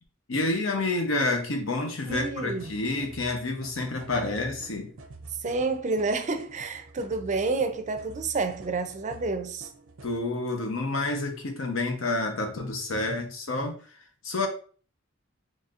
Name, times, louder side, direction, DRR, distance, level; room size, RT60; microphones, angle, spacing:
voice 1, 0.3-4.9 10.0-13.8 14.2-14.5, left 2 dB, 70° left, 0.9 m, -29 dB
voice 2, 2.1-2.7 5.4-9.7, right 3 dB, 35° right, 0.5 m, -29 dB
sound 1, 2.1-10.2, right 2 dB, 80° right, 0.6 m, -48 dB
4.1 x 3.1 x 2.5 m
head